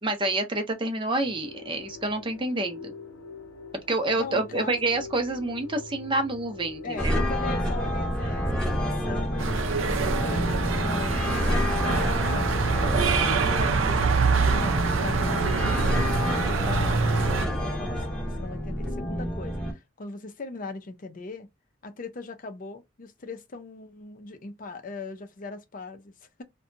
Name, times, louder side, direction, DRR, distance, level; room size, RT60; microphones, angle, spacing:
voice 1, 0.0-2.9 3.9-7.3, right 2 dB, 25° right, 0.6 m, -28 dB
sound 1, 1.2-19.0, left 3 dB, 85° left, 0.7 m, -45 dB
voice 2, 4.1-4.8 6.8-13.0 13.8-14.0 14.3-21.5 21.8-26.4, left 3 dB, 45° left, 0.5 m, -39 dB
sound 2, 7.0-19.7, equal, 5° left, 0.8 m, -28 dB
sound 3, 9.4-17.5, right 4 dB, 80° right, 0.5 m, -25 dB
2.7 x 2.2 x 2.5 m
head